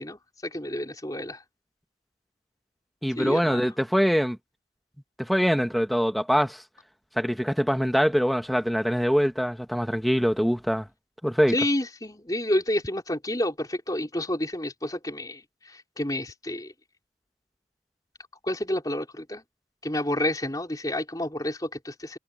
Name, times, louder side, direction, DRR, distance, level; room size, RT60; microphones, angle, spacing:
voice 1, 0.0-1.4 3.2-3.7 11.5-16.7 18.4-19.4 19.8-22.2, left 1 dB, 20° left, 4.1 m, -29 dB
voice 2, 3.0-4.4 5.2-6.6 7.2-10.9 11.2-11.5, equal, ahead, 1.3 m, -23 dB
head